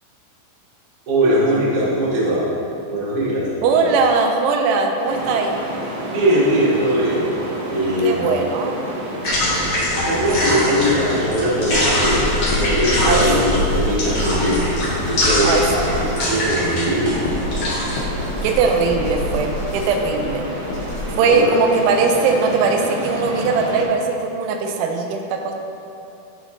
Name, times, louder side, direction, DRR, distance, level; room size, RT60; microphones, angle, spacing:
voice 1, 1.1-2.5 2.9-3.9 6.1-7.3 7.7-8.3 10.0-17.3 21.2-21.5, equal, 55° right, -8 dB, 1.7 m, -20 dB
voice 2, 3.6-5.6 8.0-8.8 13.0-13.2 15.4-16.5 18.4-20.5 21.2-25.5, right 4 dB, 85° right, 3 dB, 3.0 m, -20 dB
sound 1, 5.0-23.9, right 1 dB, 70° right, 1.9 m, -30 dB
sound 2, 9.2-18.0, left 1 dB, 50° left, 2.3 m, -23 dB
sound 3, 11.7-21.1, left 1 dB, 80° left, 2.2 m, -27 dB
11.5 x 5.2 x 3.1 m, 2.7 s
omnidirectional pair, 5.2 m